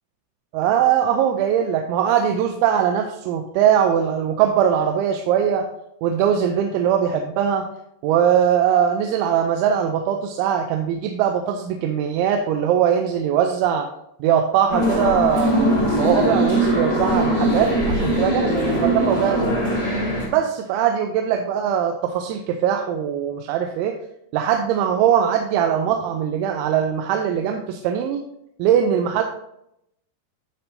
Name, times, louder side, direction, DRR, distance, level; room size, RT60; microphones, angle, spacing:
voice 1, 0.5-5.6 6.0-7.7 8.0-13.9 14.2-19.5 20.3-23.9 24.3-28.2 28.6-29.2, right 8 dB, 85° right, 4 dB, 3.0 m, -21 dB
sound 1, 14.7-20.3, equal, 15° left, 1.1 m, -21 dB
12.5 x 5.3 x 2.7 m, 0.77 s
omnidirectional pair, 5.3 m